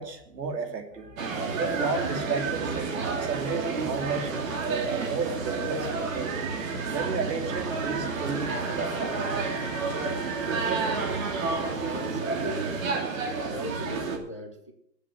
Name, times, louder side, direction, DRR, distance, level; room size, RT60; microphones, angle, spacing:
voice 1, 0.0-6.3 6.9-9.3, right 4 dB, 75° right, 6 dB, 3.0 m, -33 dB
sound 1, 1.2-14.2, right 4 dB, 55° right, 2.6 m, -30 dB
Trumpet, 8.4-11.8, left 4 dB, 90° left, 2.3 m, -44 dB
voice 2, 11.4-13.2 13.4-14.7, equal, 20° left, 6 dB, 0.4 m, -39 dB
10.0 x 7.5 x 9.2 m, 0.72 s
hypercardioid pair, 150°, 50 cm